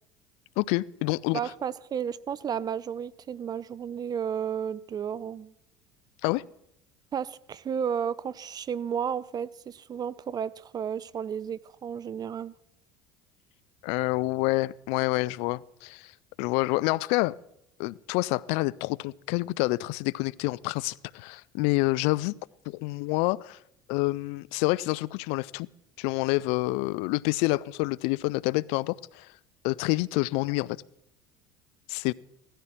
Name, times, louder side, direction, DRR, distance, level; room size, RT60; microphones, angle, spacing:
voice 1, 0.6-1.4 6.2-6.4 13.8-16.1 16.4-17.3 17.8-22.3 22.7-23.6 23.9-25.7 26.0-29.3 29.6-30.8 31.9-32.1, left 22 dB, 70° left, 0.4 m, -27 dB
voice 2, 1.3-5.5 7.1-12.5, right 8 dB, 35° right, 0.7 m, -32 dB
17.5 x 13.5 x 4.4 m
hypercardioid pair, 80°, 11 cm